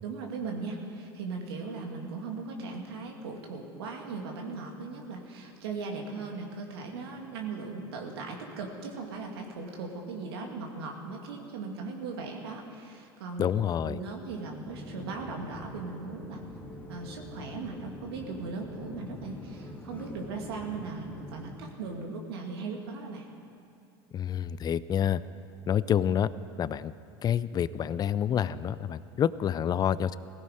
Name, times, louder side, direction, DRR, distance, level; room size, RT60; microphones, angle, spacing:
voice 1, 0.0-13.5 13.8-16.4 16.9-23.3, right 4 dB, 80° right, 1 dB, 2.3 m, -38 dB
voice 2, 13.4-14.0 24.1-25.2 25.7-26.3 26.6-26.9 27.2-30.2, left 9 dB, 30° left, 17 dB, 0.5 m, -28 dB
sound 1, 14.6-21.5, left 1 dB, 15° left, 2.6 m, -44 dB
17.5 x 16.0 x 5.0 m, 2.5 s
hypercardioid pair, 95°, 13 cm